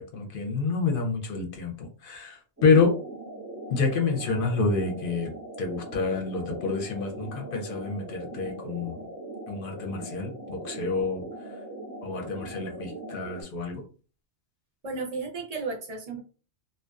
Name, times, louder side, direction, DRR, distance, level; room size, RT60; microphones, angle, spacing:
voice 1, 0.0-2.9 3.7-5.3 5.6-9.1 9.5-11.2 12.0-13.8, left 4 dB, 60° left, 4 dB, 0.6 m, -28 dB
sound 1, 2.6-13.4, right 1 dB, 15° right, 0.8 m, -40 dB
voice 2, 14.8-16.2, right 4 dB, 50° right, 1 dB, 0.5 m, -33 dB
2.5 x 2.1 x 2.3 m, 0.36 s
omnidirectional pair, 1.3 m